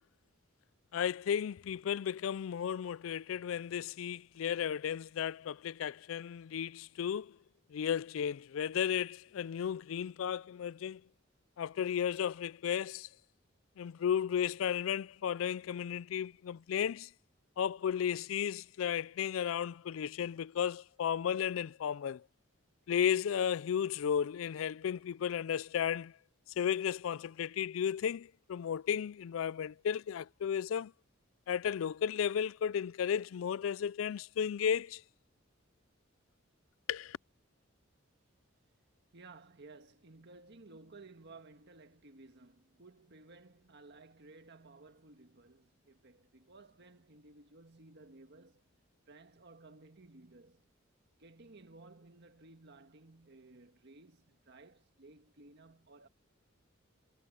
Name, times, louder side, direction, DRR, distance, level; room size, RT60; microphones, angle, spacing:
voice 1, 0.9-7.4 7.7-11.0 11.6-13.1 13.8-17.1 17.6-22.2 22.9-26.1 26.6-30.9 31.5-35.0 36.9-37.2, left 8 dB, 90° left, 0.4 m, -34 dB
voice 2, 39.1-48.7 49.1-50.7 51.2-56.1, right 3 dB, 60° right, 1.7 m, -57 dB
head